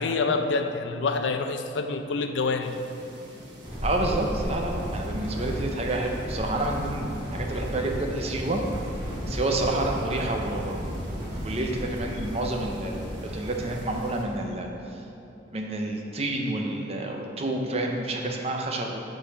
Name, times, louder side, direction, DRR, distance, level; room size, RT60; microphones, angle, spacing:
voice 1, 0.0-2.7, left 4 dB, 80° left, 7 dB, 0.5 m, -27 dB
sound 1, 2.6-14.2, right 1 dB, 75° right, 1.2 m, -46 dB
sound 2, 3.6-14.4, equal, 15° right, 1.5 m, -34 dB
voice 2, 3.8-8.6 9.3-10.9 11.4-14.7 15.5-19.0, right 2 dB, 35° right, 1 dB, 0.6 m, -29 dB
6.8 x 3.9 x 6.2 m, 2.9 s
head